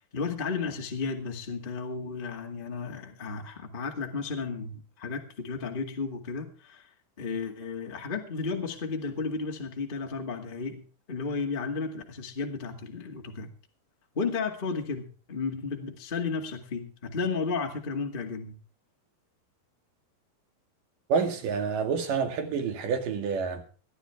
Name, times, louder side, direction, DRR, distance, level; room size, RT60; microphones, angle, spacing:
voice 1, 0.1-6.9 7.2-13.5 14.1-18.6, left 4 dB, 20° left, 1.6 m, -33 dB
voice 2, 21.1-23.6, right 6 dB, 70° right, 3.6 m, -28 dB
20.5 x 13.0 x 3.5 m
omnidirectional pair, 4.1 m